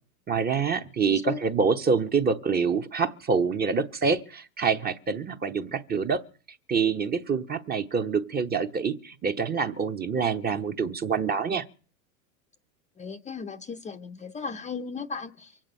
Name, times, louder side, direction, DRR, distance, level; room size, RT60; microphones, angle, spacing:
voice 1, 0.3-6.2 6.7-11.6, right 5 dB, 20° right, 1.0 m, -26 dB
voice 2, 1.1-1.4 13.0-15.6, left 5 dB, 15° left, 0.7 m, -36 dB
24.0 x 8.9 x 5.5 m
hypercardioid pair, 105°, 44 cm